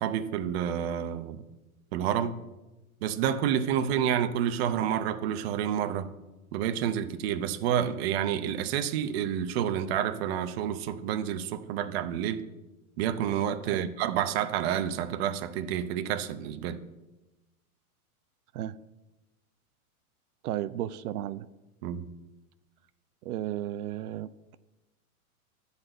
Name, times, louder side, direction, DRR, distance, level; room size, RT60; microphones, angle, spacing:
voice 1, 0.0-1.4 1.9-2.3 3.0-6.1 6.5-12.4 13.0-16.8 21.8-22.0, right 9 dB, 45° right, 10 dB, 0.7 m, -29 dB
voice 2, 20.4-21.5 23.2-24.6, right 12 dB, 90° right, 14 dB, 0.6 m, -34 dB
11.0 x 4.1 x 7.8 m, 1.1 s
supercardioid pair, 150°, 44 cm